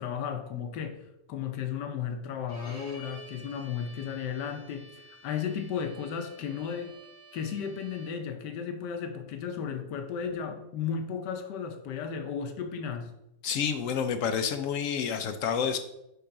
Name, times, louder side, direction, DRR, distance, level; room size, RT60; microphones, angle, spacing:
voice 1, 0.0-6.9 7.3-13.1, left 7 dB, 85° left, 6 dB, 1.3 m, -34 dB
Bowed string instrument, 2.5-8.3, right 1 dB, 35° left, 2.2 m, -51 dB
voice 2, 13.4-15.8, left 7 dB, 70° left, 7 dB, 0.8 m, -29 dB
5.4 x 3.7 x 5.7 m, 0.84 s
omnidirectional pair, 1.8 m